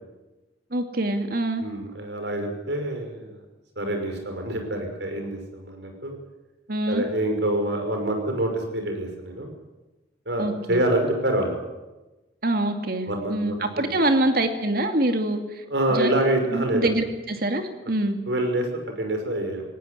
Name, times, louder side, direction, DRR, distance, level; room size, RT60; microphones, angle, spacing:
voice 1, 0.7-1.6 6.7-7.0 10.4-10.8 12.4-15.4 15.9-16.1 16.5-18.2, right 1 dB, 55° right, 6 dB, 2.4 m, -25 dB
voice 2, 1.6-3.4 3.8-6.1 6.9-9.5 10.3-11.6 13.1-14.0 15.7-16.9 18.3-19.6, right 1 dB, 70° right, 4 dB, 5.7 m, -26 dB
18.5 x 18.0 x 9.8 m, 1.1 s
head